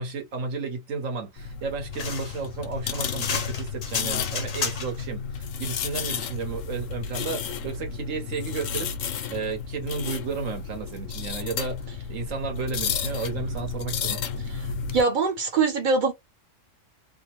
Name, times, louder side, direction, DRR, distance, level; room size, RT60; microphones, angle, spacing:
voice 1, 0.0-14.2, right 4 dB, 90° right, 1.4 m, -33 dB
sound 1, 1.4-15.0, left 6 dB, 90° left, 1.0 m, -32 dB
sound 2, 1.9-5.1, left 5 dB, 50° left, 0.5 m, -32 dB
voice 2, 14.9-16.1, right 4 dB, 60° right, 0.5 m, -22 dB
3.0 x 2.0 x 2.9 m
omnidirectional pair, 1.3 m